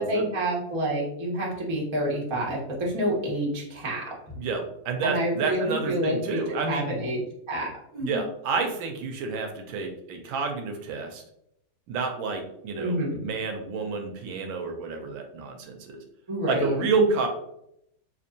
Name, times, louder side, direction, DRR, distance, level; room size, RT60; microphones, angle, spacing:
voice 1, 0.0-4.0 5.0-8.2 12.7-13.2 16.3-17.1, equal, 35° right, -4 dB, 0.4 m, -28 dB
voice 2, 4.4-6.9 8.0-11.2 11.9-16.0 16.5-17.3, right 4 dB, 75° right, 4 dB, 1.3 m, -29 dB
4.3 x 2.6 x 2.7 m, 0.78 s
omnidirectional pair, 2.3 m